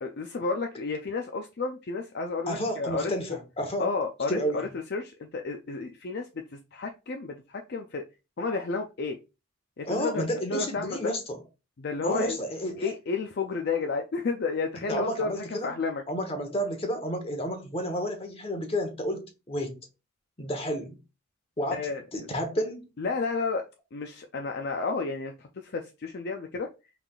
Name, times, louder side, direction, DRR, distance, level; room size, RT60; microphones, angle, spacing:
voice 1, 0.0-3.1 3.8-8.0 8.4-9.2 9.8-11.1 11.8-12.4 12.8-16.0 21.7-22.0 23.0-23.7 23.9-26.7, left 4 dB, 50° left, 0.4 m, -31 dB
voice 2, 2.5-3.9 4.3-4.7 9.8-11.4 12.0-12.9 14.9-15.7 16.1-19.8 20.4-21.0 21.6-22.9, equal, 25° left, 1.1 m, -31 dB
5.7 x 3.5 x 2.4 m
head